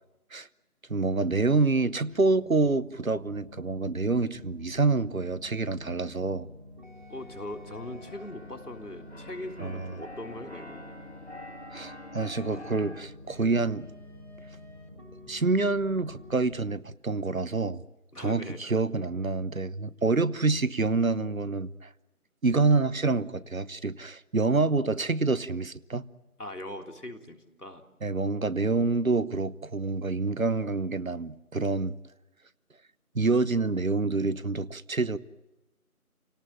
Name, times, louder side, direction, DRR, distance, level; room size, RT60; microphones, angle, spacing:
voice 1, 0.9-6.5 9.6-9.9 11.7-13.9 15.3-17.8 18.2-21.9 22.4-26.0 28.0-32.0 33.1-35.2, right 3 dB, 65° right, 17 dB, 1.0 m, -27 dB
sound 1, 2.0-16.7, left 2 dB, 35° right, 2.1 m, -49 dB
voice 2, 7.1-10.9 18.1-18.6 26.4-27.9, left 1 dB, 90° left, 4 dB, 3.6 m, -40 dB
Keyboard (musical), 7.1-13.0, left 1 dB, 45° left, 2.3 m, -46 dB
29.0 x 18.0 x 8.9 m, 1.0 s
figure-of-eight pair, 180°, 45 cm